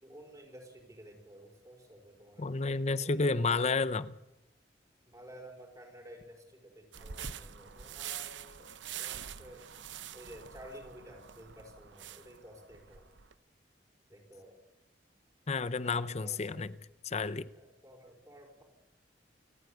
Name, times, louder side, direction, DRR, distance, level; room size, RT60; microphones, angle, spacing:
voice 1, 0.0-2.5 3.0-3.3 5.1-9.6 10.1-13.1 14.1-14.5 15.8-16.7 17.5-18.6, equal, 20° right, 5.2 m, -52 dB
voice 2, 2.4-4.1 15.5-16.7 17.0-17.5, left 3 dB, 35° left, 0.7 m, -31 dB
sound 1, 6.9-13.3, right 9 dB, 80° right, 0.8 m, -45 dB
28.5 x 9.7 x 9.5 m
head